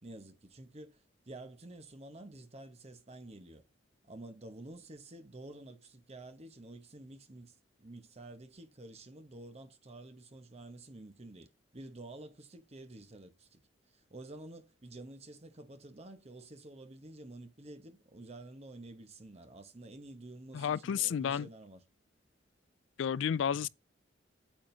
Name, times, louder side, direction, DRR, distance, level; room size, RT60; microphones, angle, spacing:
voice 1, 0.0-3.6 4.0-13.6 13.9-21.9 23.5-23.7, right 2 dB, 35° right, 1.0 m, -50 dB
voice 2, 20.5-21.5 23.0-23.7, left 8 dB, 85° left, 0.3 m, -31 dB
9.0 x 7.4 x 2.7 m
head